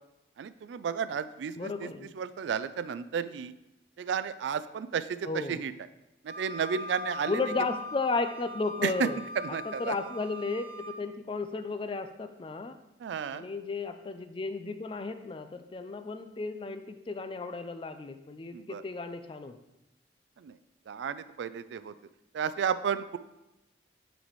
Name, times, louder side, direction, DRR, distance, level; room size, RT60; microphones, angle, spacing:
voice 1, 0.4-1.9 2.1-3.5 4.0-5.7 6.2-7.4 8.8-9.1 9.5-9.9 13.0-13.4 18.5-18.8 20.4-20.6 20.9-21.9 22.3-23.2, right 7 dB, 85° right, 14 dB, 0.3 m, -32 dB
voice 2, 1.6-2.1 5.2-5.7 7.2-9.2 9.6-12.7 13.3-19.6, left 3 dB, 30° left, 9 dB, 0.4 m, -34 dB
Wind instrument woodwind instrument, 6.3-11.0, left 1 dB, 35° right, 0.8 m, -41 dB
9.2 x 4.1 x 3.1 m, 0.95 s
head